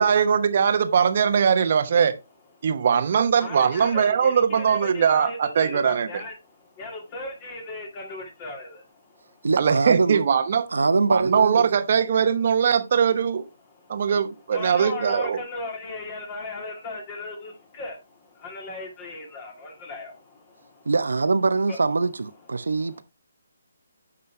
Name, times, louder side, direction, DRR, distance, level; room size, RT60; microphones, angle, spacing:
voice 1, 0.0-2.2 2.6-6.1 9.6-10.7 11.1-13.5 13.9-15.4, right 7 dB, 45° right, 1.1 m, -21 dB
voice 2, 3.4-9.5 13.7-14.1 14.5-20.9 21.7-21.8 22.6-23.0, left 2 dB, 25° left, 2.1 m, -37 dB
voice 3, 9.4-10.2 10.7-11.7 20.9-23.0, right 3 dB, 80° right, 0.9 m, -23 dB
9.8 x 5.5 x 3.2 m
hypercardioid pair, 155°, 0 cm